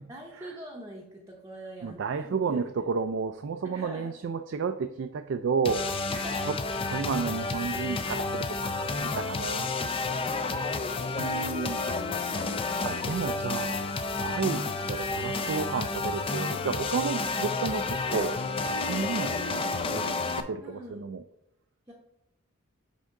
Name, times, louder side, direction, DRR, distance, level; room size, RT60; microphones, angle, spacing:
voice 1, 0.1-2.8 3.6-4.1 6.1-6.5 10.3-11.4 11.9-12.6 13.0-13.4 14.1-14.4 20.6-21.1 21.9-22.0, equal, 15° right, -3 dB, 0.7 m, -44 dB
voice 2, 1.8-6.0 6.3-6.5 6.8-9.7 11.2-11.8 12.8-13.8 14.2-18.4 18.6-21.2, right 5 dB, 55° right, 8 dB, 0.3 m, -32 dB
sound 1, 5.6-20.4, left 3 dB, 25° left, 0.4 m, -30 dB
9.6 x 3.6 x 3.7 m, 0.87 s
head